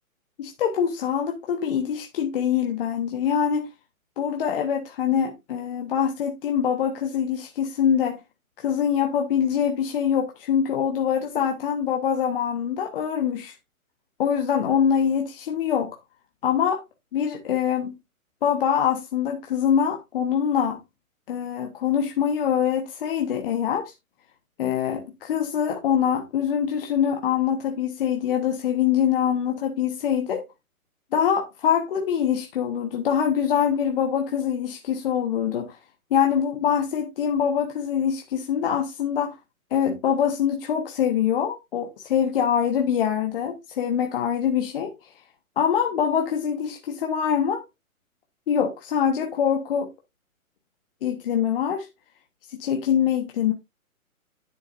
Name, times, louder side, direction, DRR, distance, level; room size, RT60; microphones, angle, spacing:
voice 1, 0.4-3.7 4.2-8.2 8.6-13.5 14.2-16.0 16.4-16.8 17.1-17.9 18.4-20.8 21.3-23.9 24.6-30.5 31.1-35.8 36.1-39.4 39.7-44.9 45.6-47.6 48.5-49.9 51.0-51.9 52.5-53.5, left 8 dB, 40° left, 1.3 m, -24 dB
10.0 x 8.4 x 2.5 m
hypercardioid pair, 140°, 43 cm